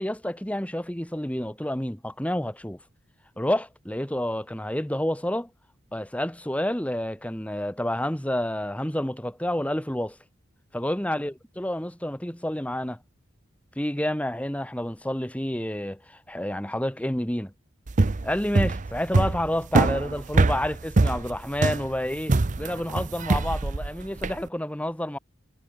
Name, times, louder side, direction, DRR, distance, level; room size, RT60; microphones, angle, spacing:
voice 1, 0.0-2.8 3.4-5.5 5.9-10.2 10.7-13.0 13.7-17.5 18.2-25.2, left 1 dB, 5° left, 1.6 m, -29 dB
sound 1, 17.9-24.4, right 3 dB, 40° right, 0.6 m, -23 dB
head